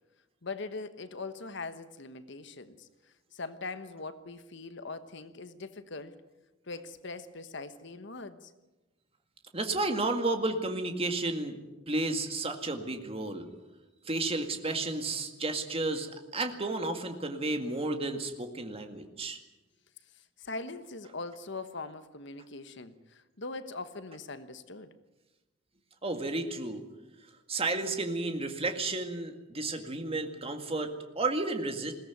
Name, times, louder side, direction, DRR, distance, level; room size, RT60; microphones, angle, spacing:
voice 1, 0.4-2.9 3.3-6.2 6.7-8.5 20.4-24.9, left 3 dB, 65° left, 11 dB, 1.2 m, -41 dB
voice 2, 9.5-11.6 11.9-13.5 14.1-16.1 16.3-19.4 26.0-26.8 27.5-31.9, right 2 dB, 30° right, 6 dB, 2.0 m, -32 dB
21.0 x 16.5 x 9.3 m, 1.1 s
head